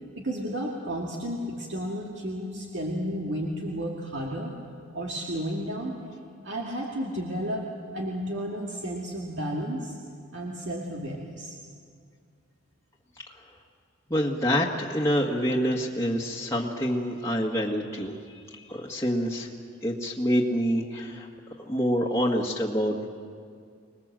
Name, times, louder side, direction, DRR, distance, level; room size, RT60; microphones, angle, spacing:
voice 1, 0.2-4.6 4.9-6.0 6.4-7.7 7.9-9.9 10.3-11.6, equal, 65° right, -2 dB, 2.3 m, -32 dB
voice 2, 14.1-18.2 18.5-19.5 19.8-21.3 21.7-23.1, equal, 15° left, -3 dB, 1.8 m, -26 dB
26.0 x 20.5 x 7.6 m, 2.2 s
head